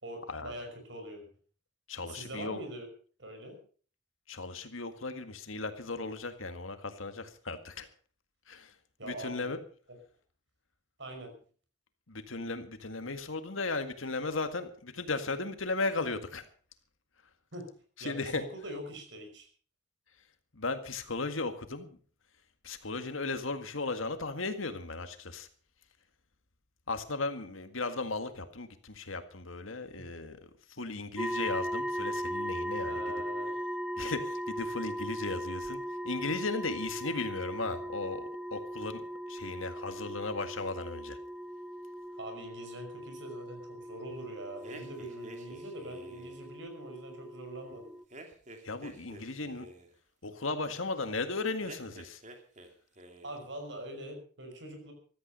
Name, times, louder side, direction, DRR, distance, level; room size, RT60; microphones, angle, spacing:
voice 1, 0.0-1.3 2.1-2.9 3.2-3.6 9.0-9.5 9.9-10.0 11.0-11.3 17.5-17.7 18.0-19.5 30.0-30.1 32.9-33.5 42.2-47.9 53.2-54.9, right 1 dB, 65° right, 5 dB, 5.7 m, -43 dB
voice 2, 1.9-2.6 4.3-7.9 8.5-8.7 9.0-9.6 12.1-16.5 18.0-18.4 20.5-22.0 22.6-25.5 26.9-30.4 30.7-33.0 34.0-41.2 48.6-49.7 50.2-52.2, left 3 dB, 90° left, 9 dB, 1.9 m, -36 dB
sound 1, 31.2-48.0, equal, 5° right, 1.0 m, -38 dB
sound 2, 44.6-46.5 48.1-49.9 51.6-52.7 53.0-53.5, right 1 dB, 35° right, 2.5 m, -49 dB
15.0 x 13.5 x 5.5 m, 0.43 s
head